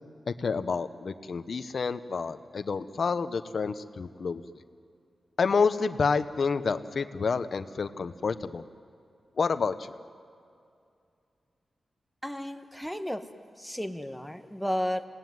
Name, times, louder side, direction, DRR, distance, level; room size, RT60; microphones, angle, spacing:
voice 1, 0.3-4.4 5.4-8.6 9.4-9.7, left 5 dB, 50° left, 11 dB, 0.9 m, -28 dB
voice 2, 12.2-13.2 13.6-15.1, equal, ahead, 7 dB, 1.1 m, -33 dB
26.5 x 18.5 x 9.5 m, 2.4 s
wide cardioid pair, 155°, 0 cm